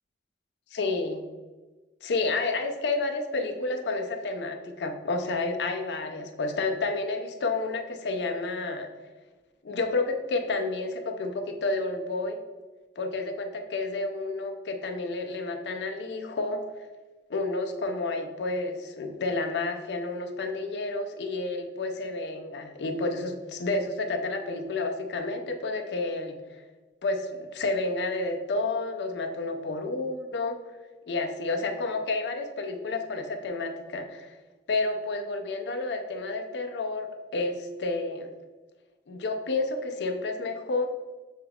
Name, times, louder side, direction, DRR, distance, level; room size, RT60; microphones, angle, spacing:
voice 1, 0.7-1.2 2.0-8.9 9.6-12.4 13.0-16.9 17.3-26.4 27.0-30.6 31.1-34.3 34.7-38.3 39.1-40.9, left 3 dB, 80° left, 5 dB, 0.5 m, -30 dB
6.3 x 2.3 x 3.4 m, 1.2 s
head